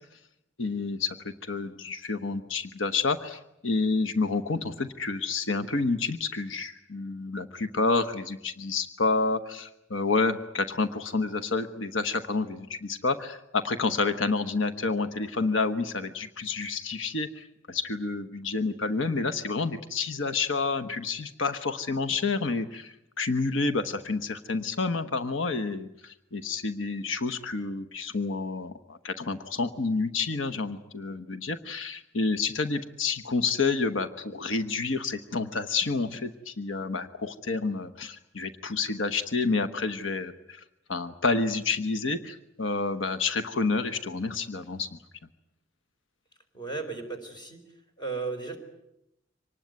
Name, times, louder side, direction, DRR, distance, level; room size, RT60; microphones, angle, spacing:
voice 1, 0.6-1.1 1.5-40.6 40.9-45.0, left 4 dB, 85° left, 10 dB, 1.1 m, -29 dB
voice 2, 46.5-47.6 48.0-48.6, right 4 dB, 25° left, 5 dB, 4.7 m, -35 dB
25.5 x 19.5 x 9.4 m, 0.86 s
head